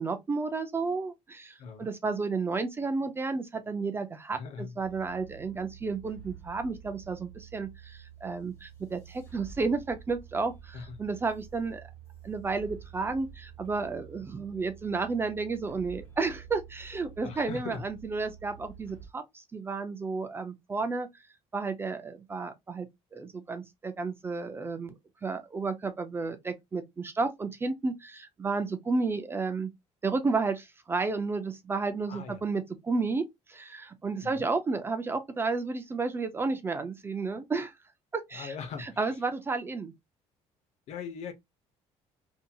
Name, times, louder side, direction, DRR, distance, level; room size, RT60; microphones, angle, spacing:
voice 1, 0.0-11.8 12.2-21.1 21.5-24.9 25.2-29.7 30.0-37.7 38.1-38.5 38.8-39.9, right 4 dB, 20° right, 0.3 m, -32 dB
voice 2, 1.6-1.9 4.3-4.7 10.7-10.9 17.2-17.8 32.1-32.4 34.2-34.5 38.3-39.1 40.9-41.3, left 6 dB, 60° left, 0.7 m, -40 dB
sound 1, 4.8-19.1, right 8 dB, 20° left, 1.3 m, -49 dB
2.7 x 2.6 x 2.2 m
cardioid pair, 150°, 12 cm